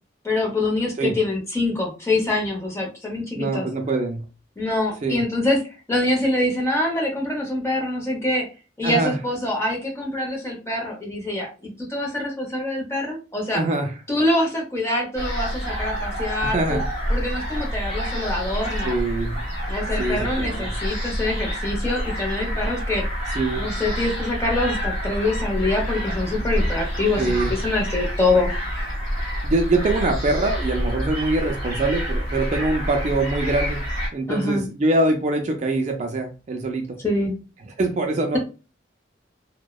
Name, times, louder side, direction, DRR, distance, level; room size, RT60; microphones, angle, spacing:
voice 1, 0.2-3.7 4.6-5.6 5.9-8.4 8.8-13.6 14.1-16.8 17.1-19.0 19.7-23.0 23.6-28.5 34.3-34.6 37.0-37.3, left 2 dB, 15° left, -1 dB, 0.7 m, -25 dB
voice 2, 3.3-4.2 5.0-5.2 8.8-9.2 13.5-13.9 16.4-16.8 18.8-19.4 20.0-20.8 23.3-23.7 27.2-27.5 29.4-33.8 34.1-37.0 37.8-38.4, right 2 dB, 40° right, 4 dB, 0.3 m, -24 dB
sound 1, 15.1-34.1, equal, 35° left, 1.1 m, -27 dB
2.7 x 2.1 x 2.2 m, 0.32 s
head